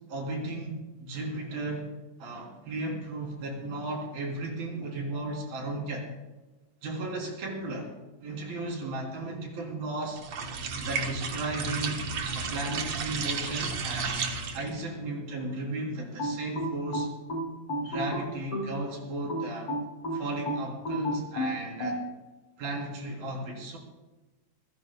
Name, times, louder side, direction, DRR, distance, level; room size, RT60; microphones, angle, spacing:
voice 1, 0.1-1.9 2.2-6.1 6.8-7.9 8.2-10.2 10.8-12.0 12.3-14.2 14.5-17.1 17.8-19.8 20.1-22.0 22.6-23.8, right 2 dB, 65° right, -1 dB, 5.2 m, -35 dB
sound 1, 10.2-14.8, right 5 dB, 85° right, 1.3 m, -33 dB
sound 2, 16.2-18.8 19.3-22.0, equal, 35° left, 7.2 m, -32 dB
27.0 x 15.0 x 2.3 m, 1.1 s
omnidirectional pair, 4.7 m